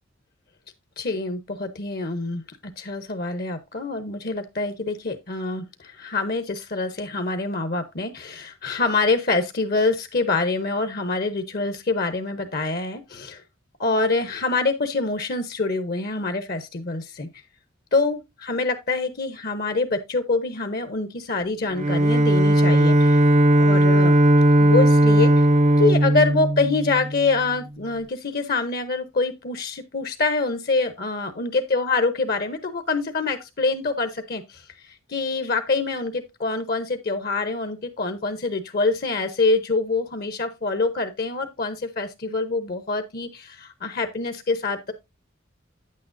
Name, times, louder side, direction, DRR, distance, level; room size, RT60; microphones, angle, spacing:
voice 1, 1.0-2.4 2.8-13.4 13.8-17.3 17.9-23.2 23.5-24.1 24.6-25.5 25.8-44.9, left 3 dB, 50° left, 0.8 m, -25 dB
Bowed string instrument, 21.7-27.4, right 1 dB, 35° right, 0.4 m, -17 dB
9.3 x 8.5 x 2.6 m
head